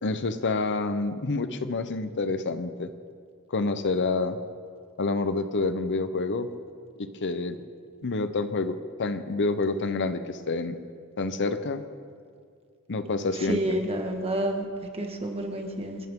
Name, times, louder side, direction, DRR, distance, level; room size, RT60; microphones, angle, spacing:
voice 1, 0.0-2.9 3.5-4.4 5.0-6.5 7.0-7.6 8.0-10.8 11.2-11.8 12.9-13.8, left 3 dB, 55° left, 10 dB, 0.8 m, -28 dB
voice 2, 13.5-14.6 15.0-16.0, right 1 dB, 25° right, 3 dB, 1.7 m, -29 dB
29.0 x 12.0 x 3.7 m, 2.1 s
head